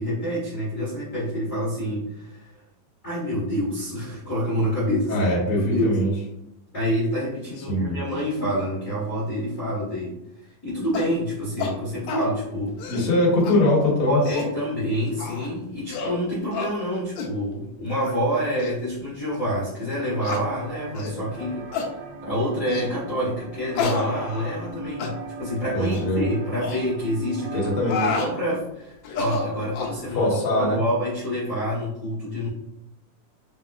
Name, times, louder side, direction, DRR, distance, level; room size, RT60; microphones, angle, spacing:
voice 1, 0.0-2.5 3.0-5.3 5.5-6.1 6.7-12.8 14.1-21.9 22.2-27.7 28.0-32.5, equal, 35° left, -9 dB, 1.4 m, -27 dB
voice 2, 5.1-6.1 7.7-8.0 12.9-14.2 25.7-26.2 27.5-28.1 30.1-30.8, left 1 dB, 55° left, -5 dB, 1.7 m, -22 dB
sound 1, 10.9-11.1 11.6-11.7 12.1-12.3 12.7-13.1 13.4-13.5 14.0-14.5 15.2-15.5 15.9-16.2 16.5-16.7 17.2-17.3 17.9-18.1 18.6-18.7 19.3-19.4 20.2-20.4 20.9-21.2 21.7-21.9 22.7-22.9 23.7-24.7 25.0-25.1 25.8-26.0 26.6-26.8 27.6-28.3 29.0-30.0, left 4 dB, 75° left, 1.7 m, -29 dB
sound 2, 19.9-28.1, right 2 dB, 70° right, 1.8 m, -38 dB
5.4 x 3.7 x 2.3 m, 0.83 s
omnidirectional pair, 3.8 m